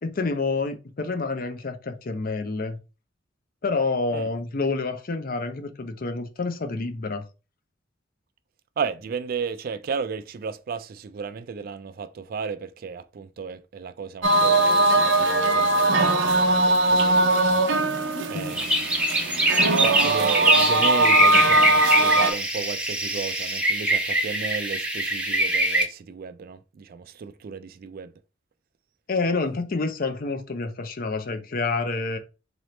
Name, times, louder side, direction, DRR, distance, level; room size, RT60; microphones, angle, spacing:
voice 1, 0.0-2.8 3.6-7.3 18.1-18.6 29.1-32.2, left 3 dB, 50° left, 0.6 m, -28 dB
voice 2, 8.8-17.6 18.0-18.7 19.1-19.4 19.8-28.1, right 5 dB, 50° right, 0.3 m, -34 dB
sound 1, 14.2-22.3, right 2 dB, 85° right, 0.7 m, -20 dB
sound 2, 18.5-25.8, right 1 dB, 5° right, 0.7 m, -23 dB
3.9 x 3.0 x 3.1 m
head